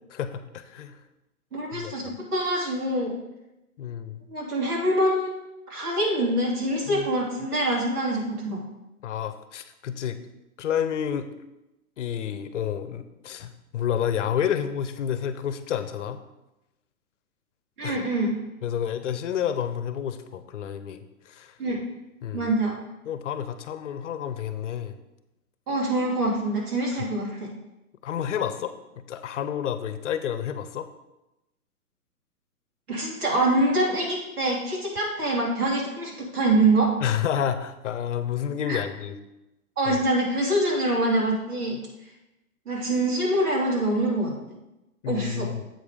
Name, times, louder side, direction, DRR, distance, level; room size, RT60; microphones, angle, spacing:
voice 1, 0.1-1.0 1.7-1.9 3.8-4.2 6.9-7.1 9.0-10.2 10.6-11.3 12.0-16.2 17.8-18.0 18.6-21.5 22.2-22.5 23.0-25.0 28.0-30.9 37.0-39.2 39.9-40.0 45.0-45.6, left 9 dB, 55° left, 11 dB, 0.8 m, -30 dB
voice 2, 1.5-3.2 4.3-5.3 5.7-8.6 17.8-18.3 21.6-21.8 22.3-22.8 25.7-27.5 32.9-36.9 38.7-38.8 39.8-41.8 42.7-44.3 45.1-45.5, right 1 dB, 80° right, -2 dB, 3.3 m, -25 dB
7.9 x 5.2 x 5.0 m, 0.94 s
hypercardioid pair, 150°, 45 cm